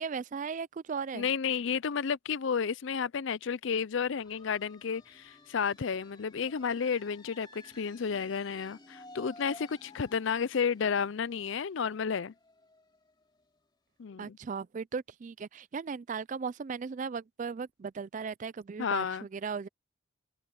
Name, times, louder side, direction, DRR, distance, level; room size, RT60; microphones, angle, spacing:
voice 1, 0.0-1.3 14.2-19.7, right 5 dB, 35° right, 0.3 m, -37 dB
voice 2, 1.1-12.3 14.0-14.4 18.8-19.3, left 6 dB, 60° left, 0.5 m, -32 dB
sound 1, 4.1-13.6, left 2 dB, 20° left, 2.8 m, -55 dB
head